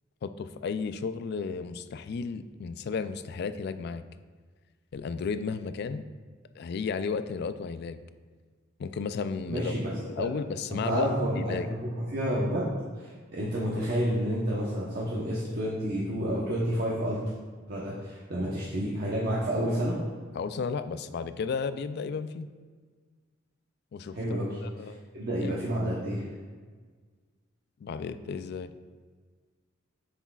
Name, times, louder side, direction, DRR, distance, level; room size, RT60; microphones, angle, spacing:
voice 1, 0.2-4.0 4.9-6.0 6.6-8.0 8.8-9.7 10.2-11.7 20.3-22.5 23.9-24.2 24.6-25.0 25.4-25.6 27.8-28.7, left 5 dB, 55° left, 12 dB, 0.3 m, -33 dB
voice 2, 9.5-10.3 10.7-17.3 17.7-20.0 24.1-24.6 25.1-26.2, equal, 50° right, -6 dB, 0.9 m, -30 dB
8.1 x 6.1 x 2.3 m, 1.5 s
head